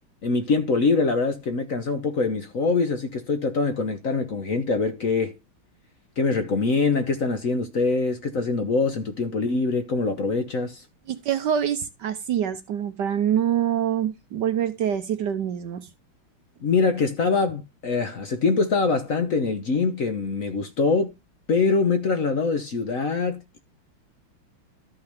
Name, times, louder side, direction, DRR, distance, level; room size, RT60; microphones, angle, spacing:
voice 1, 0.2-5.4 6.2-10.8 16.6-21.1 21.5-23.6, left 4 dB, 55° left, 1.0 m, -24 dB
voice 2, 11.1-15.9, right 9 dB, 70° right, 1.1 m, -25 dB
13.0 x 5.7 x 3.4 m
omnidirectional pair, 2.4 m